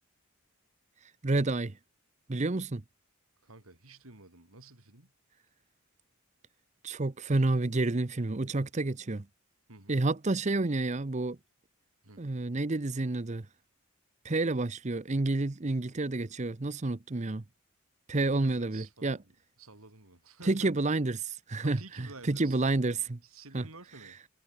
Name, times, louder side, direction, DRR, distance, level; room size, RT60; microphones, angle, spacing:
voice 1, 1.2-1.7 2.3-2.8 6.8-9.3 9.9-11.4 12.2-13.5 14.2-17.4 18.1-19.2 20.5-23.2 23.5-23.6, right 2 dB, 35° right, 0.7 m, -29 dB
voice 2, 3.4-5.1 9.7-10.1 12.0-12.2 18.2-20.7 21.6-22.6 23.2-24.3, right 3 dB, 80° right, 4.1 m, -52 dB
head